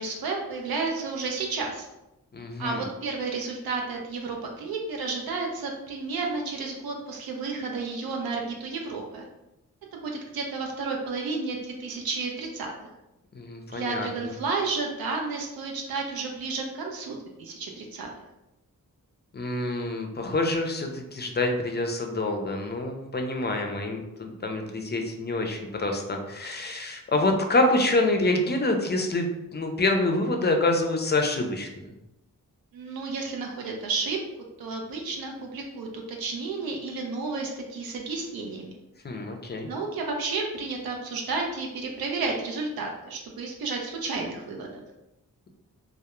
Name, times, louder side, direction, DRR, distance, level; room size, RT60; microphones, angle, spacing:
voice 1, 0.0-1.9 2.6-9.3 9.9-12.7 13.7-18.1 32.7-34.2 34.6-38.7 39.7-44.7, right 4 dB, 90° right, 1 dB, 0.5 m, -32 dB
voice 2, 2.3-2.8 13.3-14.3 19.3-31.8 39.0-39.7, left 2 dB, 30° left, 3 dB, 0.4 m, -27 dB
2.2 x 2.1 x 2.9 m, 0.94 s
cardioid pair, 60°, 35 cm